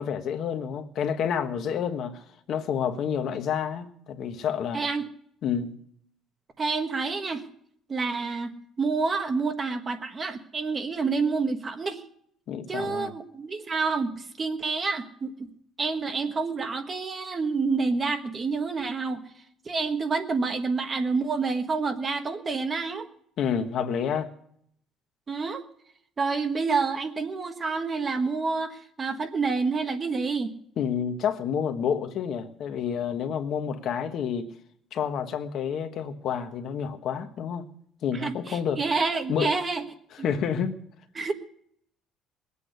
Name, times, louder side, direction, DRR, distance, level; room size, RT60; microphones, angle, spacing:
voice 1, 0.0-2.2 2.5-4.8 5.4-5.8 12.5-13.1 23.4-24.3 30.8-34.5 34.9-37.6 38.0-38.8 39.3-39.5 40.1-40.7, left 7 dB, 50° left, 1.3 m, -29 dB
voice 2, 4.7-5.1 6.6-7.4 7.9-12.0 12.7-15.3 15.8-19.2 19.6-23.1 25.3-25.6 26.2-30.5 38.1-39.8 40.2-40.3 41.1-41.3, right 4 dB, 25° right, 1.4 m, -28 dB
21.5 x 8.4 x 6.7 m
cardioid pair, 155°, 0 cm